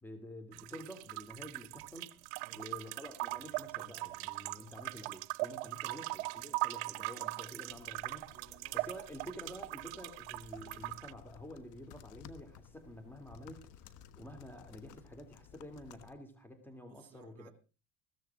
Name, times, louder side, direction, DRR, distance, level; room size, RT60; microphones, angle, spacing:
voice 1, 0.0-2.2 2.5-8.3 8.7-17.5, equal, 5° left, 2.9 m, -49 dB
sound 1, 0.5-11.1, right 23 dB, 85° right, 0.6 m, -40 dB
voice 2, 5.8-6.1 8.3-8.9 16.9-17.5, right 10 dB, 50° right, 2.1 m, -60 dB
sound 2, 7.7-16.1, left 8 dB, 65° left, 1.4 m, -57 dB
15.5 x 13.5 x 3.7 m
supercardioid pair, 100°, 32 cm